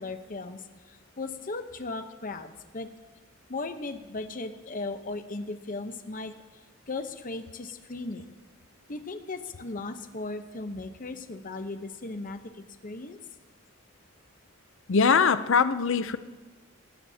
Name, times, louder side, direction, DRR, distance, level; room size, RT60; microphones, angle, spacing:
voice 1, 0.0-2.9 3.5-6.3 6.9-8.2 8.9-13.2, left 3 dB, 40° left, 8 dB, 0.9 m, -37 dB
voice 2, 14.9-16.2, left 5 dB, 65° left, 13 dB, 0.6 m, -22 dB
19.5 x 18.5 x 2.9 m, 1.3 s
head